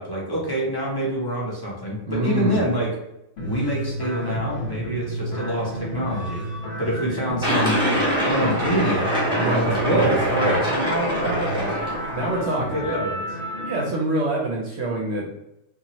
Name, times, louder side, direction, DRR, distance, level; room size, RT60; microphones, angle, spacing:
voice 1, 0.0-3.0 3.4-6.4 6.8-7.8 8.3-13.4, equal, 30° left, -5 dB, 0.4 m, -26 dB
voice 2, 2.1-2.7 9.4-10.1 10.4-10.6 12.1-12.9 13.6-15.3, right 1 dB, 65° right, -2 dB, 0.7 m, -26 dB
sound 1, 3.4-13.9, right 1 dB, 65° left, 1.2 m, -31 dB
sound 2, 7.4-12.4, equal, 5° right, 0.7 m, -24 dB
2.7 x 2.3 x 2.9 m, 0.86 s
omnidirectional pair, 1.4 m